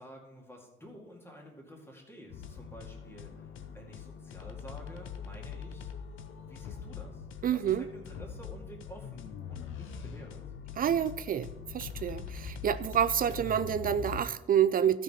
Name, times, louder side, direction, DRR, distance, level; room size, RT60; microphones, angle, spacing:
voice 1, 0.0-5.9 6.4-7.2 7.5-10.4, equal, 10° left, 0 dB, 2.0 m, -50 dB
sound 1, 2.3-14.2, left 7 dB, 85° left, 0.8 m, -43 dB
voice 2, 7.4-7.8 10.8-15.0, right 9 dB, 45° right, 14 dB, 0.4 m, -28 dB
13.0 x 5.4 x 4.3 m, 1.0 s
cardioid pair, 90°, 20 cm